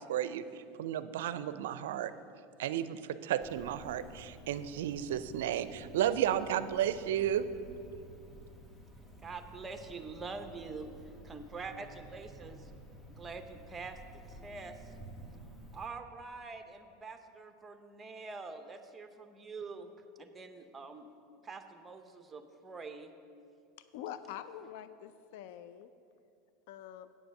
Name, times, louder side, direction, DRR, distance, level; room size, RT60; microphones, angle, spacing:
voice 1, 0.0-2.1 2.6-7.5, right 10 dB, 80° right, 13 dB, 0.4 m, -33 dB
Cricket, 3.4-15.9, right 1 dB, 15° left, 1.6 m, -52 dB
voice 2, 9.2-10.9 11.2-12.7 13.2-14.9 15.7-19.9 20.2-21.1 21.4-23.1, right 4 dB, 20° right, 7 dB, 0.8 m, -45 dB
voice 3, 23.9-25.9 26.7-27.1, left 10 dB, 70° left, 12 dB, 0.4 m, -45 dB
8.6 x 7.9 x 6.5 m, 2.5 s
supercardioid pair, 105°, 0 cm